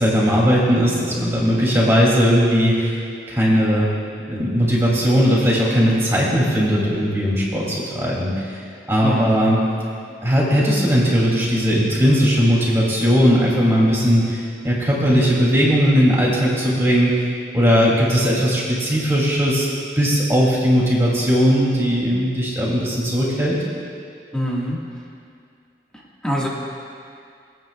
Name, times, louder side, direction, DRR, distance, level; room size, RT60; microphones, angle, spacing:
voice 1, 0.0-3.0 3.3-3.9 4.3-8.6 8.9-9.6 10.2-17.3 17.5-19.7 20.0-23.6, equal, 15° right, -5 dB, 2.5 m, -18 dB
voice 2, 9.0-9.5 24.3-24.8 25.9-26.5, equal, 5° left, -5 dB, 1.5 m, -25 dB
23.0 x 8.9 x 2.3 m, 2.4 s
head